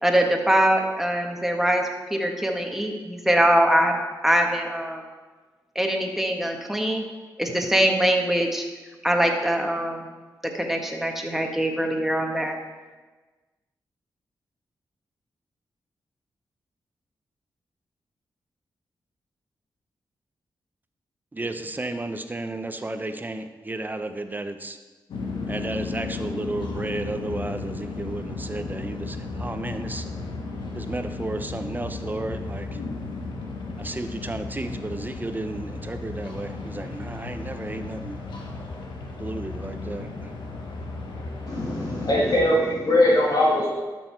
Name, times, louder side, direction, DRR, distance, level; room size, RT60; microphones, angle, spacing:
voice 1, 0.0-3.9 4.2-5.0 5.7-7.0 7.4-8.6 9.0-10.1 10.5-12.5, right 1 dB, 5° right, 2 dB, 1.6 m, -23 dB
voice 2, 21.3-24.8 25.5-30.0 30.7-32.7 33.8-38.2 39.2-40.1, right 2 dB, 25° right, 8 dB, 0.8 m, -33 dB
sound 1, 25.1-42.5, left 3 dB, 80° left, 1.4 m, -34 dB
voice 3, 41.5-43.7, left 1 dB, 55° left, -4 dB, 2.0 m, -21 dB
12.0 x 6.4 x 4.6 m, 1.3 s
cardioid pair, 65°, 8 cm